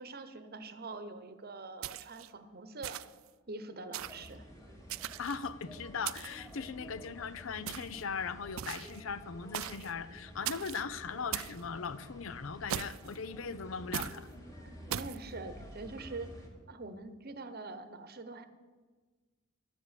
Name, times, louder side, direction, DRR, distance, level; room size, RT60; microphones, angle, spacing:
voice 1, 0.0-3.0 3.5-4.4 14.9-16.3 16.7-18.4, right 3 dB, 45° right, 11 dB, 1.0 m, -44 dB
sound 1, 1.8-2.3 2.8-3.3 3.9-4.3 4.9-5.5 6.1-6.5 7.7-8.0 8.6-9.0 9.5-9.9 10.5-10.8 11.3-11.6 12.7-13.2 13.9-14.2 14.9-15.2, right 11 dB, 70° right, 0.4 m, -39 dB
sound 2, 3.9-16.5, equal, 15° left, 2.3 m, -51 dB
voice 2, 5.2-14.3, left 5 dB, 65° left, 15 dB, 0.6 m, -39 dB
12.0 x 7.8 x 8.3 m, 1.4 s
head